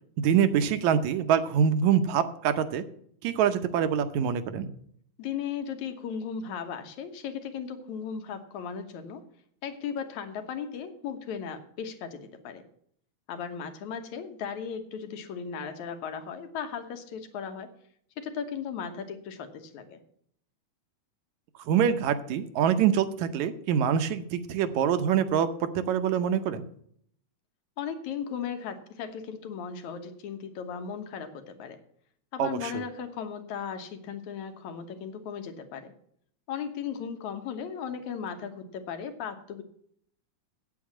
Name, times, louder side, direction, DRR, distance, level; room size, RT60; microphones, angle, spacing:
voice 1, 0.2-2.8 3.2-4.7 21.7-26.6 32.4-32.8, right 8 dB, 75° right, 10 dB, 2.1 m, -25 dB
voice 2, 5.2-9.2 9.6-12.6 13.3-17.7 18.2-20.0 27.8-31.8 32.3-35.9 36.5-39.6, left 7 dB, 75° left, 7 dB, 2.5 m, -36 dB
8.5 x 8.4 x 7.3 m, 0.65 s
omnidirectional pair, 3.4 m